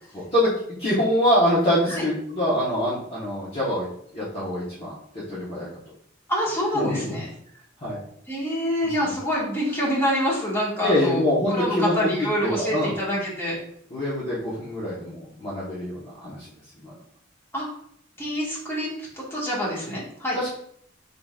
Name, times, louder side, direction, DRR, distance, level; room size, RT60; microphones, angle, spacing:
voice 1, 0.1-0.5 0.8-3.9 4.1-5.7 6.7-7.1 7.8-8.0 8.8-9.1 10.8-12.9 13.9-16.5 16.8-16.9 20.3-20.5, left 1 dB, 30° left, -8 dB, 1.1 m, -25 dB
voice 2, 6.3-7.3 8.3-11.2 11.5-13.5 17.5-17.7 18.2-18.9 19.3-20.4, equal, 15° left, -6 dB, 1.6 m, -26 dB
5.2 x 3.9 x 2.4 m, 0.66 s
head